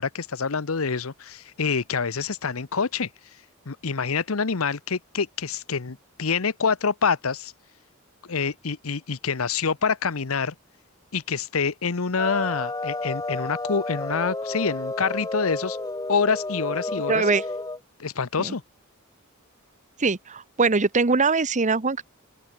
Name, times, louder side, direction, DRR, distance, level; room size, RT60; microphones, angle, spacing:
voice 1, 0.0-3.1 3.7-7.5 8.3-10.5 11.1-15.8 16.1-17.2 18.0-18.6, left 5 dB, 70° left, 0.9 m, -26 dB
sound 1, 12.2-17.8, left 2 dB, 15° left, 2.3 m, -31 dB
voice 2, 17.1-17.4 18.4-18.5 20.0-22.0, right 4 dB, 35° right, 1.0 m, -22 dB
open air
head